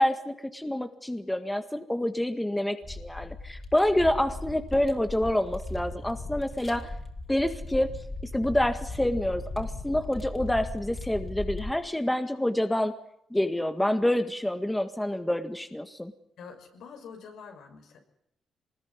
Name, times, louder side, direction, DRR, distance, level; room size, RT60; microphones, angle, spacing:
voice 1, 0.0-6.9 7.3-7.9 8.2-12.9 13.3-16.1, left 1 dB, 10° left, 8 dB, 1.8 m, -27 dB
sound 1, 2.8-11.7, left 2 dB, 35° left, 4.5 m, -38 dB
voice 2, 16.4-18.0, left 6 dB, 80° left, 4 dB, 6.0 m, -46 dB
24.0 x 20.5 x 9.8 m, 0.74 s
cardioid pair, 95°, 0 cm